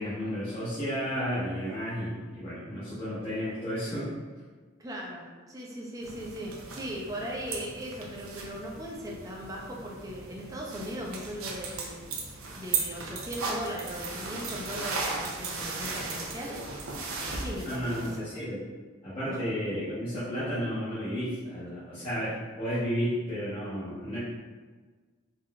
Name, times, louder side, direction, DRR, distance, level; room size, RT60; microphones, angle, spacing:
voice 1, 0.0-4.1 17.6-18.6 19.0-24.2, equal, 25° left, -13 dB, 0.8 m, -32 dB
voice 2, 4.8-12.2 12.6-16.6 17.3-18.3 19.2-19.4, equal, 15° right, -3 dB, 0.5 m, -38 dB
sound 1, 6.0-18.2, right 4 dB, 85° right, 0.5 m, -37 dB
3.7 x 2.5 x 2.2 m, 1.4 s
head